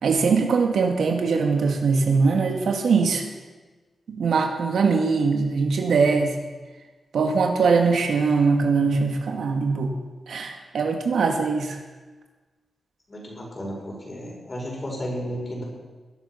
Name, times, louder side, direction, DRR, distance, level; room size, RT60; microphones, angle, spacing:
voice 1, 0.0-3.2 4.1-6.4 7.1-9.9 10.3-11.8, right 4 dB, 80° right, 3 dB, 2.2 m, -21 dB
voice 2, 13.1-15.6, equal, 30° left, -1 dB, 5.5 m, -33 dB
20.5 x 11.5 x 5.9 m, 1.3 s
wide cardioid pair, 140°, 0 cm